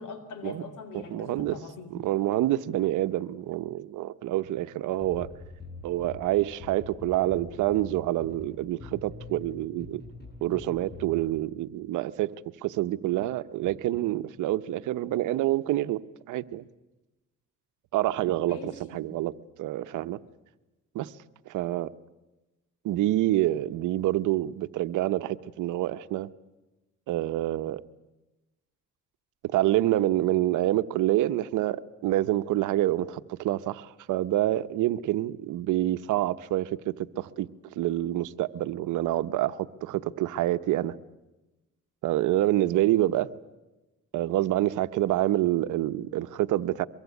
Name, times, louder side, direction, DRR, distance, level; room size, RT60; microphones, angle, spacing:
voice 1, 0.0-1.9 18.5-19.2, left 4 dB, 80° left, 4.0 m, -42 dB
voice 2, 0.9-1.6 1.9-5.3 5.8-10.0 10.4-12.3 12.6-16.0 16.3-16.7 17.9-19.3 19.6-20.2 20.9-21.1 21.5-21.9 22.8-26.3 27.1-27.8 29.4-40.9 42.0-43.3 44.1-46.9, right 14 dB, 90° right, 1.0 m, -27 dB
sound 1, 5.0-11.4, left 2 dB, 35° left, 6.8 m, -44 dB
23.5 x 23.5 x 8.4 m
cardioid pair, 90°, 30 cm